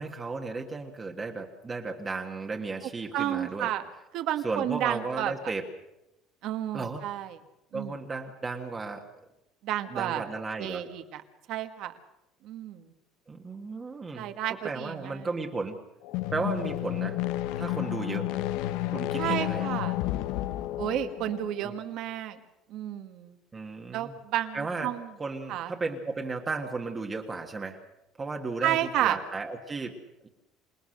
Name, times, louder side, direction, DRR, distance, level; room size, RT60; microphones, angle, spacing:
voice 1, 0.0-3.7 4.4-5.6 6.7-7.0 7.7-9.0 9.9-10.9 13.3-14.3 14.6-15.8 16.3-17.2 17.6-18.3 18.9-19.7 21.6-21.7 23.5-24.2 24.5-24.9 25.2-27.8 28.2-30.3, right 3 dB, 20° right, 2 dB, 1.7 m, -34 dB
voice 2, 3.1-3.8 4.1-5.3 6.4-7.4 7.7-8.0 9.6-10.3 10.6-11.2 11.5-11.9 12.4-12.9 14.1-15.3 19.2-20.0 20.8-22.4 22.7-23.4 23.9-25.1 25.5-25.7 28.6-29.2, right 12 dB, 55° right, 8 dB, 1.8 m, -31 dB
sound 1, 16.0-21.7, left 14 dB, 75° left, 0.9 m, -31 dB
27.0 x 19.0 x 6.6 m, 0.88 s
cardioid pair, 160°, 0 cm